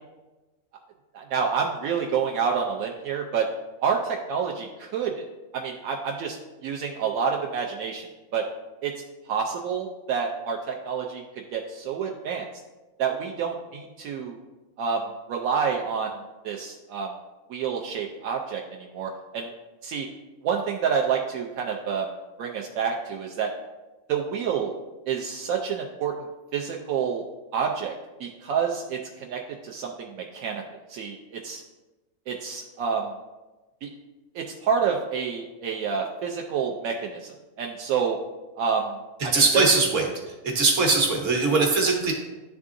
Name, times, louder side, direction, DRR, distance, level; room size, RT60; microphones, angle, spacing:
voice 1, 1.1-3.5 3.8-5.2 5.5-8.4 8.8-8.9 9.3-11.2 11.5-12.5 13.0-14.4 14.8-16.2 16.4-17.1 17.5-19.5 19.8-20.1 20.4-22.1 22.4-23.5 24.1-24.7 25.1-26.1 26.5-27.2 27.5-27.9 28.2-30.6 30.9-31.6 32.3-33.1 33.8-33.9 34.3-38.2 38.6-38.9 39.2-39.7, right 6 dB, 85° right, 1 dB, 1.0 m, -28 dB
voice 2, 39.3-40.0 40.4-42.1, right 3 dB, 65° right, 1 dB, 1.4 m, -21 dB
10.5 x 3.6 x 2.5 m, 1.1 s
omnidirectional pair, 1.4 m